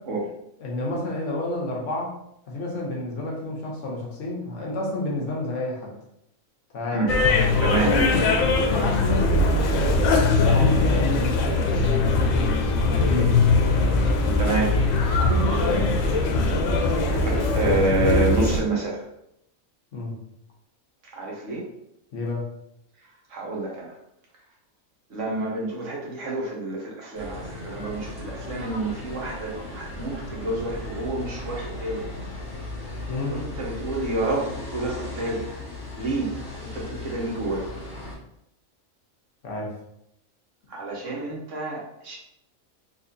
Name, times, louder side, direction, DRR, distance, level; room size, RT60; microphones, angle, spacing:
voice 1, 0.6-2.1 2.5-5.9 6.7-10.2 10.5-13.4 15.2-16.0 19.9-20.2 22.1-22.5 33.1-33.4 39.4-39.7, left 2 dB, 65° left, -2 dB, 1.2 m, -29 dB
sound 1, 7.1-18.6, left 3 dB, 90° left, 1.0 m, -21 dB
voice 2, 7.6-7.9 14.4-14.7 17.1-19.0 21.1-21.6 23.3-23.9 25.1-32.0 33.3-35.4 36.0-36.3 36.6-37.6 40.7-42.2, right 2 dB, 65° right, -2 dB, 1.2 m, -28 dB
sound 2, 27.1-38.1, left 2 dB, 5° right, 1.2 m, -37 dB
4.0 x 2.6 x 2.6 m, 0.78 s
omnidirectional pair, 1.4 m